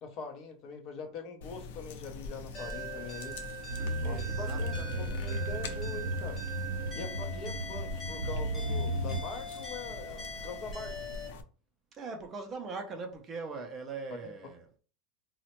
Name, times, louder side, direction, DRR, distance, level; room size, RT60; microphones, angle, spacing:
voice 1, 0.0-3.4 4.0-6.4 6.9-11.1 14.2-14.3, left 4 dB, 35° left, 0.6 m, -43 dB
sound 1, 1.4-11.4, left 4 dB, 80° left, 0.5 m, -45 dB
sound 2, 2.5-11.3, right 1 dB, 15° left, 0.9 m, -42 dB
sound 3, 3.7-9.2, right 1 dB, 80° right, 0.6 m, -34 dB
voice 2, 4.0-5.0 11.9-14.7, right 4 dB, 20° right, 0.4 m, -41 dB
3.8 x 2.1 x 2.9 m
supercardioid pair, 170°, 0 cm